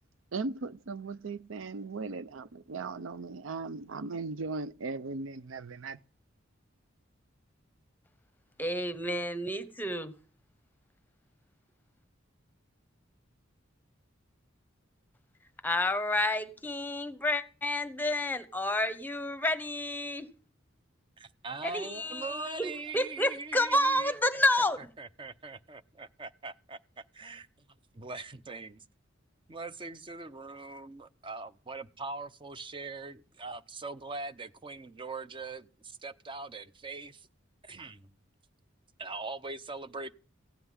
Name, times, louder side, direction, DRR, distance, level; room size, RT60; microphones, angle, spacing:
voice 1, 0.3-6.0, right 3 dB, 80° right, 0.6 m, -38 dB
voice 2, 8.6-10.1 15.6-20.3 21.6-24.8, left 1 dB, 10° left, 1.0 m, -30 dB
voice 3, 21.2-24.1 25.0-27.5 27.9-28.8 29.5-37.3 37.6-38.1 39.0-40.1, right 3 dB, 25° right, 0.6 m, -42 dB
15.5 x 5.7 x 9.7 m
head